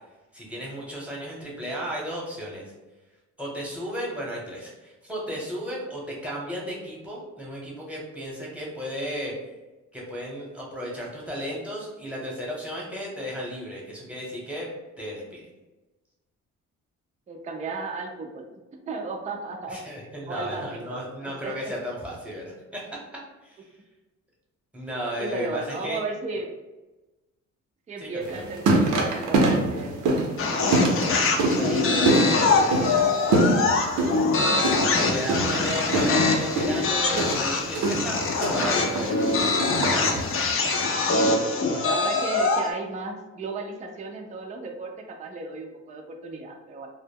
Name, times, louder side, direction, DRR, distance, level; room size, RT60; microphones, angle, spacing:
voice 1, 0.3-2.6 3.4-9.3 9.9-14.7 15.0-15.4 19.7-23.0 23.4-23.6 24.7-26.0 28.0-28.4 35.0-39.6 39.9-40.4, equal, 5° right, -4 dB, 0.9 m, -34 dB
voice 2, 17.3-18.4 18.9-19.8 20.3-21.5 25.2-26.5 27.9-30.0 30.5-31.2 31.6-34.5 41.6-46.9, right 3 dB, 25° right, 2 dB, 0.4 m, -35 dB
sound 1, 28.2-40.5, right 2 dB, 85° right, 0.6 m, -25 dB
sound 2, 30.4-42.7, left 3 dB, 45° left, 0.5 m, -24 dB
2.0 x 2.0 x 3.5 m, 1.1 s
cardioid pair, 90°, 30 cm